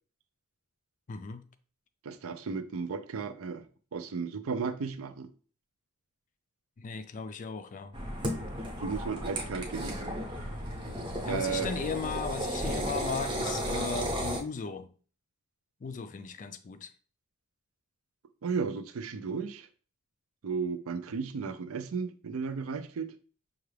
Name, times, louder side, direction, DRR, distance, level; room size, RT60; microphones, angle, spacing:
voice 1, 1.1-1.4 6.8-8.0 11.2-14.9 15.8-16.9, left 5 dB, 40° left, 0.3 m, -36 dB
voice 2, 2.0-3.6 3.9-5.3 8.8-10.1 11.3-11.7 18.4-19.7 20.4-23.1, right 5 dB, 80° right, 0.5 m, -34 dB
sound 1, 7.9-14.4, equal, 25° right, 0.7 m, -34 dB
5.7 x 2.3 x 3.2 m
head